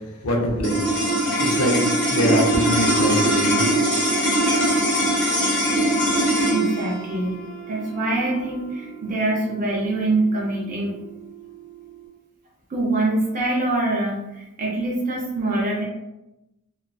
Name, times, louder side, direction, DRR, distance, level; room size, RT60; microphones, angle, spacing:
voice 1, 0.2-0.8 1.4-1.8 2.1-3.7, left 1 dB, 80° left, -1 dB, 0.6 m, -23 dB
sound 1, 0.6-11.1, right 1 dB, 5° left, 0.7 m, -22 dB
voice 2, 6.5-7.4 7.7-11.0 12.7-15.8, right 2 dB, 40° right, -4 dB, 0.4 m, -24 dB
2.4 x 2.2 x 2.3 m, 0.97 s
head